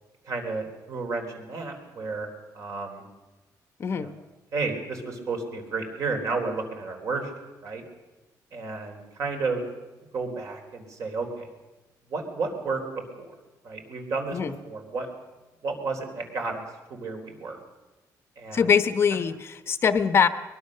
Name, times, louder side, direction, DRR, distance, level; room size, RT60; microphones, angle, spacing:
voice 1, 0.2-2.3 2.5-3.0 3.9-4.1 4.5-7.3 7.6-7.8 8.5-9.6 10.1-11.5 12.1-12.8 13.2-13.3 13.6-14.4 14.6-15.1 15.6-16.6 16.9-17.6 18.4-18.7, right 4 dB, 50° right, 4 dB, 4.0 m, -32 dB
voice 2, 3.8-4.1 14.3-14.6 18.5-20.3, left 7 dB, 35° left, 11 dB, 0.9 m, -22 dB
22.5 x 21.5 x 6.7 m, 1.1 s
cardioid pair, 175°, 7 cm